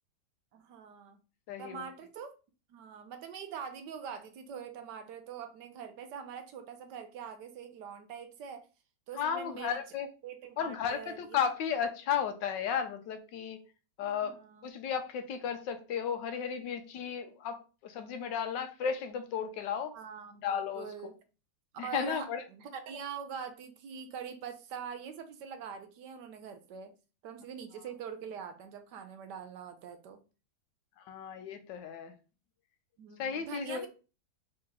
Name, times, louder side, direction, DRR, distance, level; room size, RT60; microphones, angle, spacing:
voice 1, 0.5-1.2 1.6-2.3 2.7-8.7 9.1-9.8 10.2-11.4 14.0-14.7 19.9-21.2 21.8-26.9 27.2-30.2 33.0-33.9, right 7 dB, 70° right, 1.2 m, -44 dB
voice 2, 1.5-1.9 9.2-10.1 10.6-13.6 14.0-14.3 14.6-17.6 17.8-19.9 20.4-20.9 21.8-22.4 31.1-32.1 33.2-33.9, left 7 dB, 80° left, 1.3 m, -34 dB
4.2 x 2.9 x 3.6 m
omnidirectional pair, 2.0 m